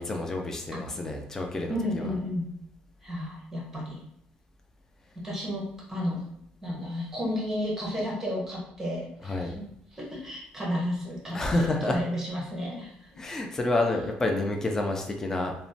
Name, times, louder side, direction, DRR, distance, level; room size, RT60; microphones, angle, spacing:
voice 1, 0.0-2.2 9.2-9.5 11.3-12.0 13.2-15.5, left 2 dB, 15° left, 2 dB, 0.3 m, -29 dB
voice 2, 1.7-2.5 3.0-4.0 5.1-6.2 6.6-9.6 9.9-13.2, equal, 10° right, -4 dB, 0.9 m, -32 dB
3.0 x 2.1 x 2.6 m, 0.72 s
cardioid pair, 150°, 3 cm